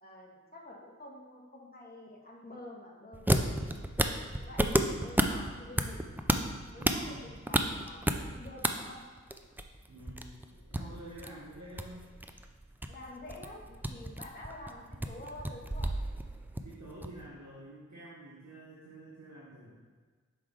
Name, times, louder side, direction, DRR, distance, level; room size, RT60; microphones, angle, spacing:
voice 1, 0.0-3.7 4.0-6.1 6.7-9.0 10.5-10.9 12.9-15.9, left 1 dB, 30° left, -4 dB, 1.5 m, -48 dB
sound 1, 3.1-8.7 8.9-17.2, right 1 dB, 5° right, 0.4 m, -31 dB
voice 2, 6.8-7.3 9.9-12.1 16.6-19.8, right 1 dB, 75° right, -7 dB, 1.3 m, -49 dB
6.2 x 4.7 x 3.8 m, 1.5 s
wide cardioid pair, 45°, 30 cm